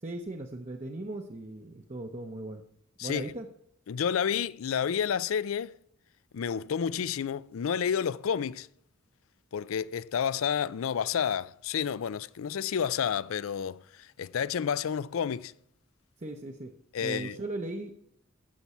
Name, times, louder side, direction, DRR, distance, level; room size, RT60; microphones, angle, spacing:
voice 1, 0.0-2.6 3.0-3.5 16.2-16.7 17.0-17.9, right 2 dB, 35° right, 0.7 m, -38 dB
voice 2, 3.0-3.3 3.9-5.7 6.3-8.7 9.5-13.8 14.2-15.5 16.9-17.4, left 7 dB, 80° left, 0.4 m, -30 dB
15.0 x 6.0 x 4.3 m
head